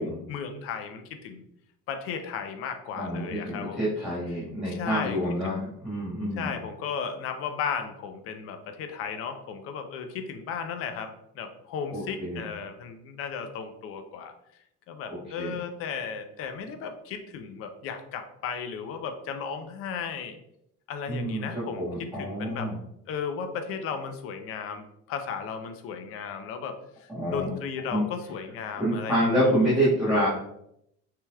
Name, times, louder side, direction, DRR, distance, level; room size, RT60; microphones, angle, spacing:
voice 1, 0.0-1.4 1.9-3.8 4.7-5.2 5.6-5.7 6.4-14.3 14.9-20.4 20.9-22.7 23.1-29.7, left 6 dB, 45° left, 7 dB, 0.6 m, -35 dB
voice 2, 3.0-6.5 11.9-12.4 15.1-15.5 21.1-22.7 27.1-27.5 27.9-28.0 28.8-30.3, equal, ahead, -10 dB, 1.5 m, -27 dB
5.8 x 3.4 x 2.3 m, 0.77 s
cardioid pair, 165°, 32 cm